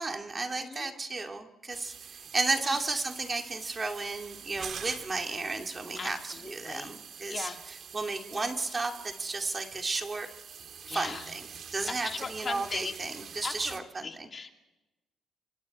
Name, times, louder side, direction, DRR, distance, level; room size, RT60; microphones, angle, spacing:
voice 1, 0.0-10.3 10.9-14.3, right 3 dB, 30° right, 4 dB, 2.5 m, -33 dB
voice 2, 0.6-0.9 2.6-2.8 5.9-6.9 7.3-7.6 8.3-8.5 10.9-11.3 11.9-12.9 13.4-13.5 14.0-14.6, left 5 dB, 40° left, 4 dB, 2.2 m, -38 dB
sound 1, 1.7-13.8, right 7 dB, 60° right, 2.2 m, -46 dB
29.5 x 25.0 x 4.3 m, 1.1 s
cardioid pair, 90°, 0 cm